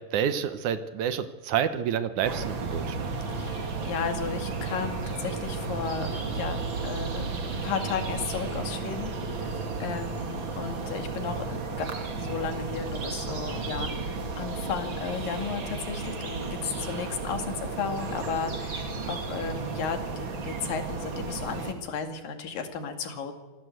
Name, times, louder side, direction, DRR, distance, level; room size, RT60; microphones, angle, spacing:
voice 1, 0.1-3.1, right 8 dB, 70° right, 11 dB, 2.4 m, -28 dB
sound 1, 2.2-21.7, right 4 dB, 40° right, 2.6 m, -33 dB
voice 2, 3.3-7.3 7.6-9.1 9.4-11.9 12.2-23.3, left 6 dB, 85° left, 6 dB, 3.9 m, -34 dB
27.5 x 17.5 x 8.0 m, 1.2 s
omnidirectional pair, 3.9 m